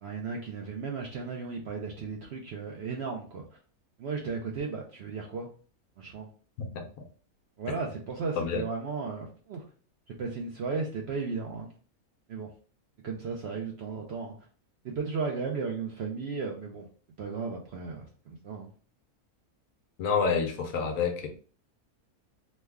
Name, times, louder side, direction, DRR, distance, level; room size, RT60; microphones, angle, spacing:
voice 1, 0.0-3.4 4.0-5.5 6.0-6.3 7.6-9.6 10.1-11.7 12.3-12.5 13.0-14.3 14.8-16.9 17.2-18.7, right 4 dB, 65° right, 1 dB, 0.6 m, -35 dB
voice 2, 20.0-21.3, left 5 dB, 80° left, 4 dB, 1.2 m, -28 dB
3.1 x 2.2 x 3.4 m, 0.40 s
omnidirectional pair, 1.6 m